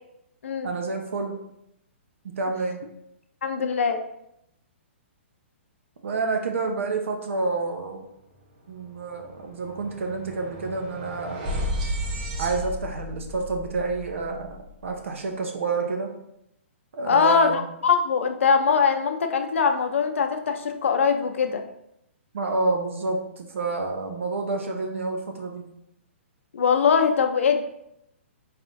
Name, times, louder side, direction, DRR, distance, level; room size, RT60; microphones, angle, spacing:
voice 1, 0.6-1.4 2.2-2.8 6.0-8.0 8.7-11.6 12.4-14.5 14.8-16.1 16.9-17.6 22.3-25.6, right 3 dB, 75° right, 3 dB, 0.8 m, -28 dB
voice 2, 3.4-4.0 17.1-21.6 26.5-27.6, left 6 dB, 75° left, 7 dB, 0.5 m, -22 dB
sound 1, 8.3-8.4 8.7-15.0, equal, 40° right, 0.9 m, -34 dB
4.2 x 3.4 x 2.6 m, 0.80 s
hypercardioid pair, 140°, 7 cm